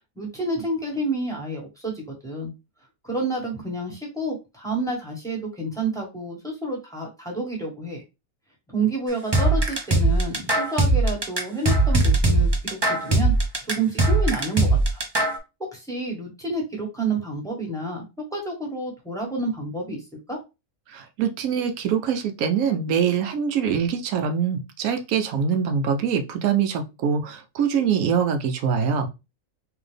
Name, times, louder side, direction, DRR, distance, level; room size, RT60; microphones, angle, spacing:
voice 1, 0.1-2.5 3.0-8.0 8.7-13.3 13.7-15.0 15.6-20.0 20.3-20.4, right 2 dB, ahead, -1 dB, 1.3 m, -29 dB
sound 1, 9.3-15.4, right 2 dB, 25° right, 0.5 m, -20 dB
voice 2, 20.9-29.1, right 7 dB, 80° right, 7 dB, 1.1 m, -24 dB
3.9 x 2.8 x 3.3 m, 0.25 s
omnidirectional pair, 1.5 m